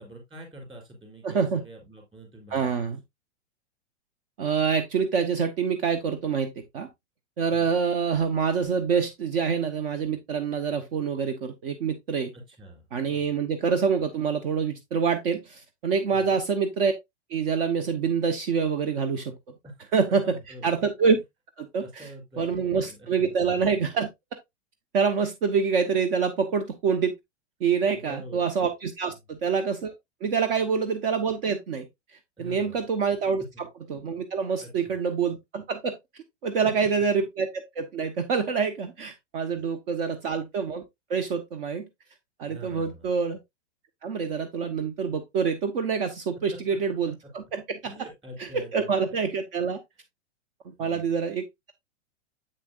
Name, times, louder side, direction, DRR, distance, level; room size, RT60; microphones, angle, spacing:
voice 1, 0.0-2.9 7.5-7.8 12.3-13.3 16.1-16.4 19.6-19.9 20.2-20.8 21.8-23.4 27.9-28.5 29.1-29.2 32.4-32.8 33.5-33.7 34.6-35.0 36.6-36.7 40.0-40.2 42.5-43.1 46.5-46.8 47.8-49.2 50.8-51.1, equal, 15° right, 3.5 m, -45 dB
voice 2, 1.2-1.6 2.5-3.0 4.4-6.9 7.4-12.3 12.9-16.9 17.3-19.4 19.9-20.2 20.6-21.2 21.6-22.1 22.4-24.1 24.9-27.1 27.6-29.9 30.2-31.9 32.4-33.4 33.9-35.9 36.4-40.8 41.1-41.9 42.4-43.4 44.0-47.8 48.4-49.8 50.6-51.7, right 6 dB, 50° right, 1.2 m, -26 dB
8.0 x 6.7 x 2.5 m
hypercardioid pair, 155°, 35 cm